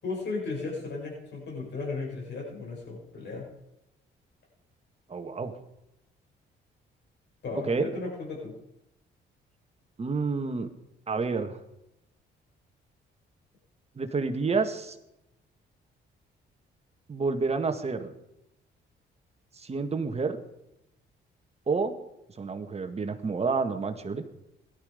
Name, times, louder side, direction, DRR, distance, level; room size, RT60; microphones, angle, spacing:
voice 1, 0.0-3.5 7.4-8.5, left 3 dB, 60° left, -2 dB, 7.2 m, -35 dB
voice 2, 5.1-5.5 7.5-7.9 10.0-10.7 11.1-11.6 14.0-15.0 17.1-18.1 19.6-20.4 21.7-21.9 22.4-24.2, right 4 dB, 30° right, 7 dB, 1.8 m, -29 dB
17.5 x 12.5 x 5.2 m, 0.86 s
cardioid pair, 90°, 20 cm